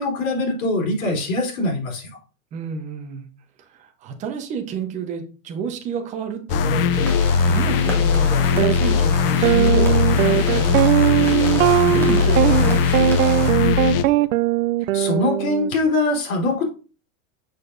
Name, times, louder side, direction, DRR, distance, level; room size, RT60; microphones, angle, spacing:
voice 1, 0.0-2.1 12.2-12.3 14.9-16.6, left 2 dB, 85° left, 0 dB, 3.5 m, -23 dB
voice 2, 2.5-3.3 3.8-7.2 7.5-13.3, right 6 dB, 20° right, 5 dB, 0.8 m, -30 dB
sound 1, 6.5-14.0, left 6 dB, 45° left, 0.5 m, -19 dB
sound 2, 6.9-13.5, equal, 5° left, 1.2 m, -33 dB
sound 3, 8.6-8.7 9.4-15.8, right 16 dB, 85° right, 0.5 m, -19 dB
6.7 x 6.6 x 2.5 m, 0.36 s
supercardioid pair, 160°, 40 cm